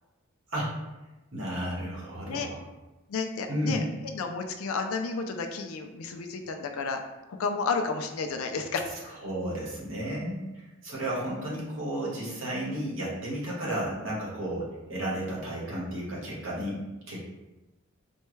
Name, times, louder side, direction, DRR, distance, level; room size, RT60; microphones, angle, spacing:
voice 1, 1.3-2.6 3.5-3.8 9.2-16.8 17.1-17.2, right 1 dB, 65° right, -6 dB, 1.2 m, -33 dB
voice 2, 3.1-7.0 7.3-8.8, left 4 dB, 75° left, 5 dB, 0.4 m, -31 dB
4.4 x 2.2 x 3.1 m, 1.1 s
head